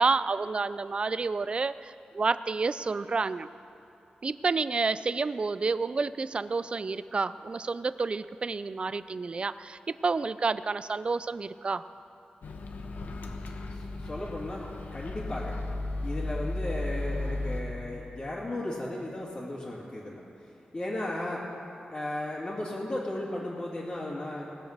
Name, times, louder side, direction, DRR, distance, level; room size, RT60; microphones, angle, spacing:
voice 1, 0.0-3.5 4.2-11.9, right 4 dB, 40° right, 15 dB, 0.4 m, -29 dB
Microwave oven, 12.4-17.6, left 2 dB, 80° left, 1.2 m, -35 dB
voice 2, 13.7-15.5 16.0-20.2 20.7-21.4 21.9-24.5, left 1 dB, 30° left, -8 dB, 2.5 m, -35 dB
20.0 x 7.9 x 6.7 m, 2.9 s
wide cardioid pair, 115°, 3 cm